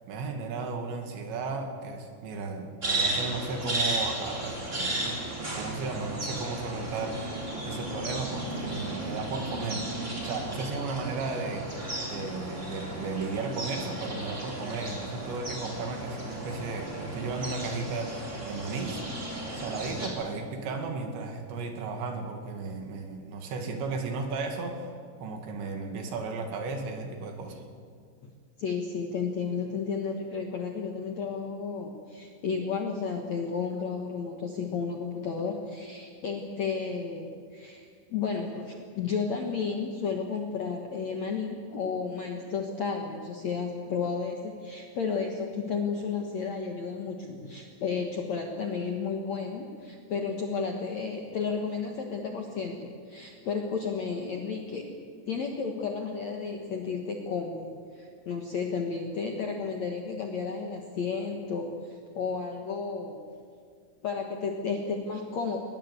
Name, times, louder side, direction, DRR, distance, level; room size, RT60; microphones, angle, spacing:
voice 1, 0.0-9.9 10.2-24.9 25.2-27.7, right 4 dB, 70° right, 5 dB, 4.2 m, -35 dB
sound 1, 2.8-20.1, right 1 dB, 15° right, 3.5 m, -34 dB
voice 2, 28.6-54.9 55.3-63.3 64.0-65.6, left 5 dB, 75° left, 2 dB, 1.6 m, -32 dB
21.0 x 20.5 x 8.2 m, 2.1 s
omnidirectional pair, 5.6 m